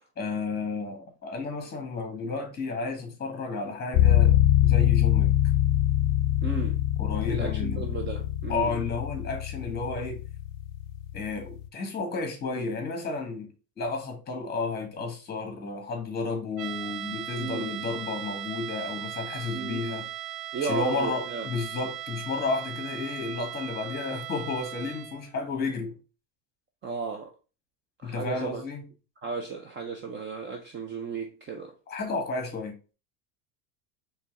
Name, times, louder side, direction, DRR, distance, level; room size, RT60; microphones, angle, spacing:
voice 1, 0.2-5.3 7.0-7.8 8.5-10.2 11.1-13.5 13.8-20.1 20.6-26.0 28.0-28.9 31.9-32.9, left 4 dB, 20° left, 1.7 m, -32 dB
sound 1, 3.9-11.7, left 13 dB, 40° left, 0.5 m, -24 dB
voice 2, 6.4-6.8 7.3-8.8 17.4-17.8 19.5-20.0 20.5-21.5 26.8-27.3 28.0-28.6 29.2-31.7, right 5 dB, 25° right, 0.5 m, -34 dB
sound 2, 16.6-25.3, right 13 dB, 60° right, 0.8 m, -38 dB
4.4 x 3.3 x 3.6 m
supercardioid pair, 130°, 46 cm